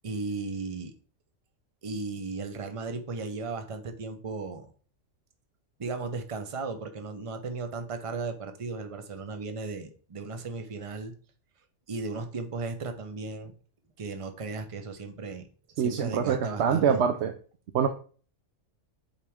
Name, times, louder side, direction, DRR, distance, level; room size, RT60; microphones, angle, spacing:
voice 1, 0.0-0.9 1.8-4.7 5.8-11.1 11.9-13.5 14.0-15.5 15.8-17.0, right 4 dB, 30° right, 7 dB, 0.7 m, -36 dB
voice 2, 15.8-17.3 17.7-17.9, right 7 dB, 65° right, 7 dB, 0.9 m, -25 dB
7.6 x 5.0 x 3.5 m, 0.41 s
omnidirectional pair, 1.3 m